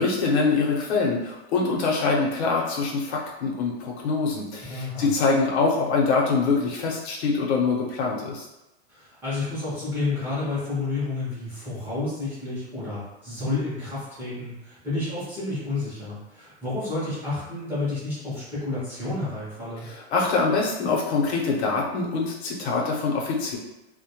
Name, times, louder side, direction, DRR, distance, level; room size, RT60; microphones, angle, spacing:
voice 1, 0.0-8.4 19.8-23.6, left 4 dB, 90° left, -2 dB, 0.8 m, -24 dB
voice 2, 4.6-5.1 8.9-19.9, left 3 dB, 5° right, -11 dB, 0.6 m, -30 dB
2.1 x 2.1 x 2.8 m, 0.96 s
supercardioid pair, 165°, 32 cm